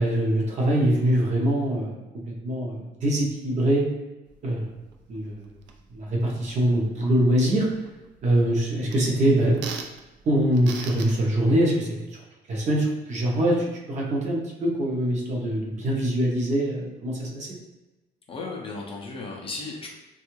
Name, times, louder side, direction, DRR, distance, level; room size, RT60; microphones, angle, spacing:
voice 1, 0.0-2.0 2.4-3.9 4.4-4.7 5.1-5.4 5.9-7.7 8.2-9.6 10.3-11.9 12.5-17.6, right 1 dB, 40° right, -2 dB, 0.7 m, -23 dB
sound 1, 4.3-11.6, right 5 dB, 85° right, 0.4 m, -44 dB
voice 2, 18.3-20.0, left 3 dB, 30° left, -1 dB, 0.4 m, -35 dB
3.4 x 2.3 x 3.0 m, 1.0 s
cardioid pair, 175°, 18 cm